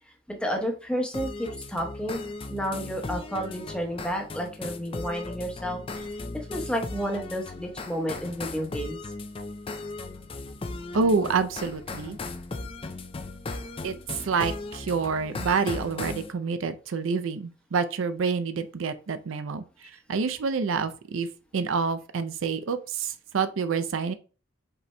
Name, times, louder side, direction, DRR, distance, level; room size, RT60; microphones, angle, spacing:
voice 1, 0.3-6.1 6.3-9.0, equal, 5° left, 0.9 m, -31 dB
sound 1, 1.1-16.3, left 3 dB, 25° left, 0.4 m, -37 dB
voice 2, 10.9-12.2 13.8-21.3 21.5-24.1, right 5 dB, 75° right, 0.5 m, -28 dB
5.4 x 4.2 x 2.2 m
head